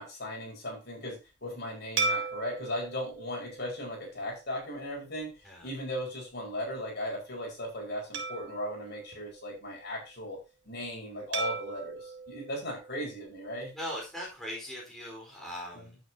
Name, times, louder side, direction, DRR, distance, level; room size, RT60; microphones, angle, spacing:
voice 1, 0.0-5.3 5.6-10.4 10.7-13.7 15.7-15.8, left 1 dB, 60° left, -1 dB, 5.4 m, -37 dB
sound 1, 2.0-4.6 5.2-5.4 8.1-9.9 11.3-13.6, right 4 dB, 85° right, 2.5 m, -37 dB
voice 2, 13.7-16.0, equal, ahead, -3 dB, 4.7 m, -40 dB
10.5 x 8.5 x 2.9 m, 0.27 s
head